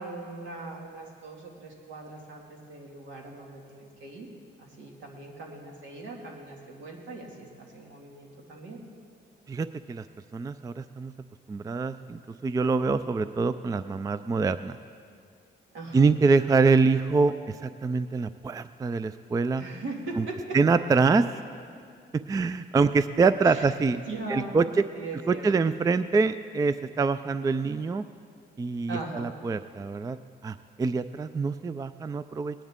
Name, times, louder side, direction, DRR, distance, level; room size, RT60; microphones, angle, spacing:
voice 1, 0.0-4.3 4.6-8.8 15.7-16.1 19.6-20.6 23.4-23.7 24.1-24.6 24.9-25.5 28.9-29.3, right 2 dB, 75° right, 0 dB, 2.3 m, -40 dB
voice 2, 9.5-10.0 10.3-11.1 11.5-14.8 15.9-19.6 20.2-20.3 20.5-21.2 22.1-24.0 24.3-24.6 25.3-28.0 28.6-30.2 30.4-32.5, right 4 dB, 20° right, 13 dB, 0.3 m, -25 dB
19.0 x 10.0 x 3.7 m, 2.3 s
cardioid pair, 90°, 20 cm